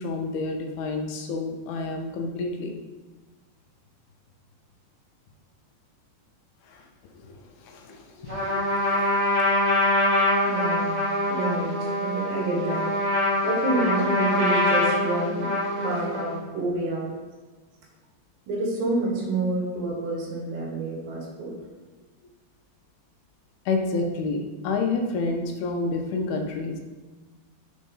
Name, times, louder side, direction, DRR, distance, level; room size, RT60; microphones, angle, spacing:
voice 1, 0.0-2.8 6.7-6.8 7.2-7.4 7.7-9.1 23.7-26.8, left 3 dB, 80° left, 3 dB, 2.4 m, -29 dB
Trumpet, 8.3-16.4, left 1 dB, 20° right, 2.0 m, -24 dB
voice 2, 10.4-11.0 11.3-12.9 13.4-17.1 18.5-21.5, right 2 dB, 80° right, -1 dB, 3.6 m, -28 dB
8.7 x 4.2 x 5.4 m, 1.2 s
omnidirectional pair, 5.0 m